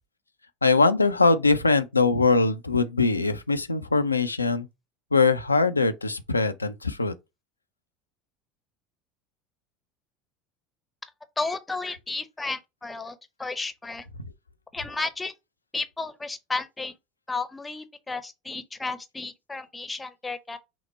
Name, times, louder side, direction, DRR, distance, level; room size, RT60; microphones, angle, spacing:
voice 1, 0.6-4.7 5.1-7.1, left 3 dB, 85° left, 0.4 m, -22 dB
voice 2, 11.4-14.1 14.7-15.3 15.7-16.9 17.3-20.6, left 3 dB, 15° left, 0.7 m, -33 dB
5.8 x 2.1 x 4.3 m
figure-of-eight pair, 70°, 0 cm